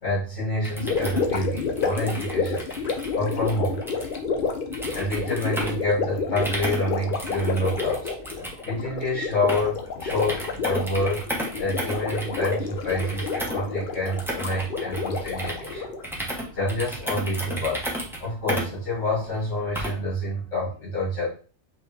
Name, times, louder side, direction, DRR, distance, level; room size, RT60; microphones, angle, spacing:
voice 1, 0.0-2.7 3.1-3.8 4.9-11.3 11.6-15.9 16.5-17.8 18.2-21.3, left 1 dB, 70° left, -8 dB, 2.4 m, -27 dB
sound 1, 0.5-20.2, equal, ahead, 0.7 m, -35 dB
Gurgling, 0.8-16.1, left 4 dB, 55° left, 0.7 m, -30 dB
5.4 x 2.6 x 3.2 m, 0.37 s
omnidirectional pair, 1.3 m